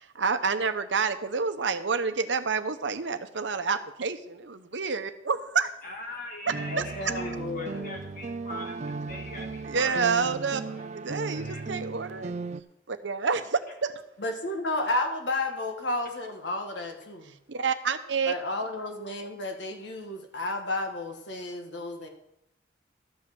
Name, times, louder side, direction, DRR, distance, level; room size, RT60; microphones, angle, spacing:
voice 1, 0.1-5.7 6.8-6.9 9.6-10.6 10.9-12.3 12.9-14.0 17.5-18.3, right 5 dB, 75° right, 10 dB, 0.9 m, -28 dB
voice 2, 5.8-10.8 11.1-11.6, left 1 dB, 50° left, 1 dB, 1.8 m, -42 dB
sound 1, 6.5-12.6, right 4 dB, 40° right, 0.4 m, -36 dB
voice 3, 6.7-8.0 14.2-17.3 18.2-22.1, left 2 dB, 65° left, 4 dB, 1.6 m, -32 dB
12.5 x 5.5 x 7.7 m, 0.80 s
head